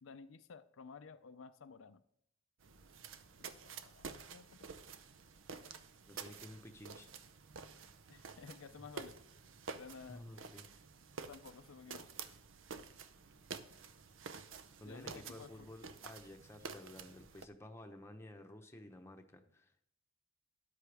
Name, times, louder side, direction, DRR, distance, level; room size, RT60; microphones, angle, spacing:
voice 1, 0.0-2.0 3.4-4.7 8.1-9.2 9.7-10.3 11.3-12.1 14.8-15.7, left 5 dB, 80° left, 10 dB, 0.5 m, -54 dB
sound 1, 2.6-17.5, right 5 dB, 75° right, 0.7 m, -50 dB
voice 2, 6.0-7.1 10.1-10.7 14.8-19.8, left 1 dB, 15° left, 4 dB, 0.9 m, -53 dB
13.0 x 10.0 x 3.4 m, 0.72 s
head